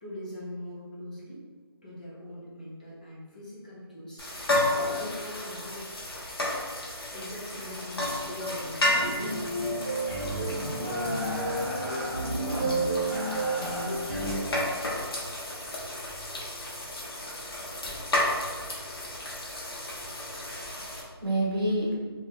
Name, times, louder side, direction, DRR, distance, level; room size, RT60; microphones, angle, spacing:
voice 1, 0.0-1.4 1.8-4.3 4.9-5.8 7.1-9.2, equal, 20° left, -7 dB, 0.4 m, -41 dB
sound 1, 4.2-21.0, left 1 dB, 65° left, 1.0 m, -33 dB
sound 2, 9.2-14.4, right 1 dB, 20° right, 0.9 m, -30 dB
voice 2, 19.9-22.0, right 1 dB, 60° right, -3 dB, 1.0 m, -31 dB
2.7 x 2.4 x 3.5 m, 1.5 s
hypercardioid pair, 165°, 13 cm